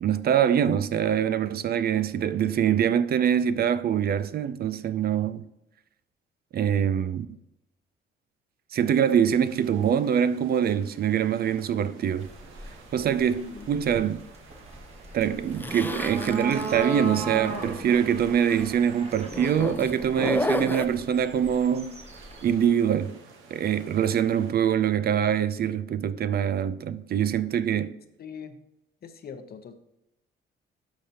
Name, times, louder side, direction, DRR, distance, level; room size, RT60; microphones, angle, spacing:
voice 1, 0.0-5.4 6.5-7.3 8.7-12.3 12.9-14.2 15.1-21.9 22.4-23.2 23.5-27.9, right 8 dB, 50° right, 0.4 m, -24 dB
sound 1, 8.8-24.5, right 4 dB, 85° right, 1.1 m, -50 dB
sound 2, 12.2-22.6, right 3 dB, 30° right, 1.4 m, -37 dB
Zipper (clothing), 15.5-18.1 18.4-18.7 19.3-20.8, left 2 dB, 10° left, 0.5 m, -32 dB
voice 2, 28.2-28.6 29.0-29.7, left 6 dB, 50° left, 0.8 m, -42 dB
12.0 x 5.0 x 2.8 m
cardioid pair, 90°, 20 cm